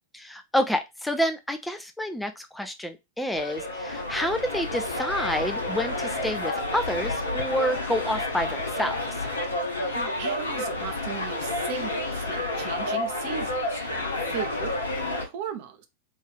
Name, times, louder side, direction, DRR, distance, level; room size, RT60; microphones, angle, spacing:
voice 1, 0.2-9.3, equal, 5° left, 0.4 m, -29 dB
sound 1, 3.3-15.3, left 2 dB, 75° left, 0.9 m, -30 dB
voice 2, 9.9-13.8 14.2-14.8 15.0-15.9, right 8 dB, 50° right, 0.7 m, -37 dB
3.6 x 2.7 x 3.2 m
figure-of-eight pair, 90°, 0 cm